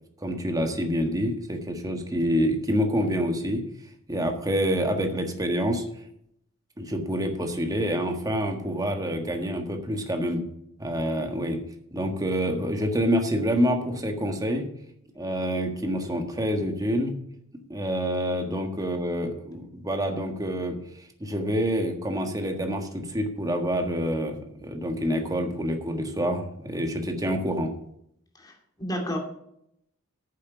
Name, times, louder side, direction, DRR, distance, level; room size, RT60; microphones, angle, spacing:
voice 1, 0.2-3.6 4.1-5.8 6.8-10.4 10.8-11.6 11.9-14.7 15.1-17.1 17.7-20.8 21.2-27.7, equal, 15° right, 4 dB, 1.5 m, -27 dB
voice 2, 28.3-29.2, equal, 20° left, 1 dB, 2.5 m, -32 dB
9.1 x 7.6 x 7.0 m, 0.74 s
head